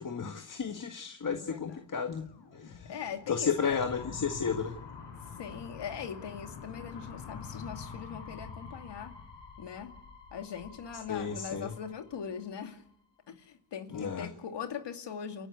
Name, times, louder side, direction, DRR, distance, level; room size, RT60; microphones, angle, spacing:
voice 1, 0.0-2.2 2.5-2.9 3.3-4.7 11.1-11.7 13.9-14.3, left 6 dB, 45° left, 6 dB, 1.8 m, -33 dB
voice 2, 1.3-1.8 2.9-3.8 5.4-9.1 9.6-9.9 10.3-12.8 13.3-15.5, left 7 dB, 75° left, 6 dB, 2.6 m, -41 dB
sound 1, 2.0-12.9, left 5 dB, 90° left, 4.6 m, -46 dB
29.5 x 11.5 x 8.1 m, 0.72 s
cardioid pair, 95°, 43 cm